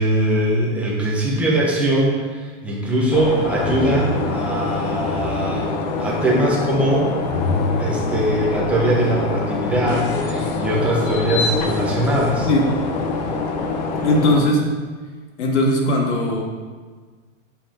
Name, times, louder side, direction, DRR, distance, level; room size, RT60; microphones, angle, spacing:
voice 1, 0.0-7.1 7.8-12.5, right 1 dB, 5° right, -4 dB, 0.8 m, -21 dB
sound 1, 3.1-14.5, left 3 dB, 35° left, 0.6 m, -24 dB
voice 2, 14.0-14.6 15.4-16.5, left 1 dB, 60° left, 1 dB, 1.7 m, -18 dB
7.4 x 5.1 x 4.3 m, 1.5 s
supercardioid pair, 165°, 38 cm